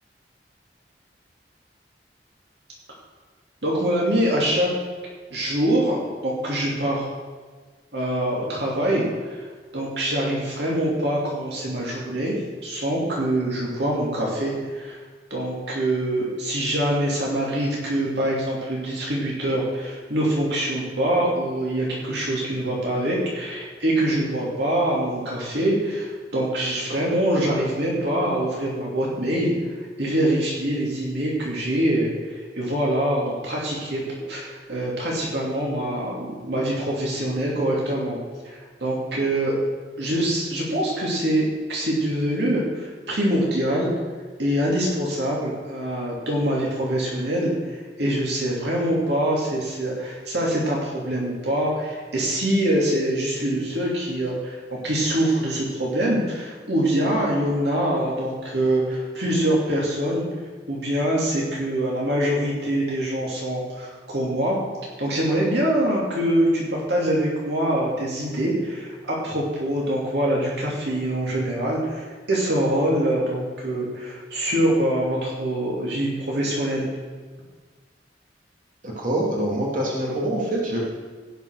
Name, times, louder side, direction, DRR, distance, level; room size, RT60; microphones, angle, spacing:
voice 1, 3.6-4.7 5.3-7.1 7.9-12.3 12.6-15.0 15.3-29.5 30.0-34.0 34.3-38.2 38.4-39.5 40.0-43.9 44.4-60.3 60.7-64.6 65.0-76.9, right 1 dB, 65° right, -4 dB, 2.6 m, -24 dB
voice 2, 78.8-80.9, right 1 dB, 50° right, -3 dB, 2.9 m, -25 dB
17.0 x 5.8 x 6.5 m, 1.4 s
head